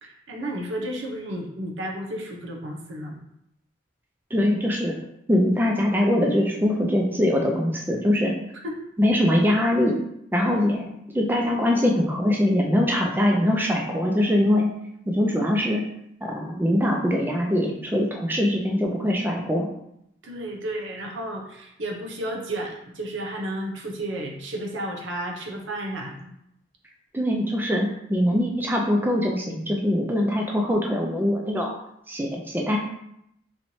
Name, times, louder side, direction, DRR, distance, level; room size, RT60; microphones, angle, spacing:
voice 1, 0.0-3.2 8.6-8.8 10.4-10.5 20.2-26.3, right 1 dB, 85° right, 1 dB, 0.8 m, -32 dB
voice 2, 4.3-5.0 5.3-8.4 9.0-10.0 10.3-10.8 11.1-14.7 15.1-15.9 16.2-19.7 27.1-31.7 32.1-32.8, left 1 dB, 10° right, 0 dB, 0.4 m, -22 dB
4.2 x 3.0 x 2.7 m, 0.77 s
head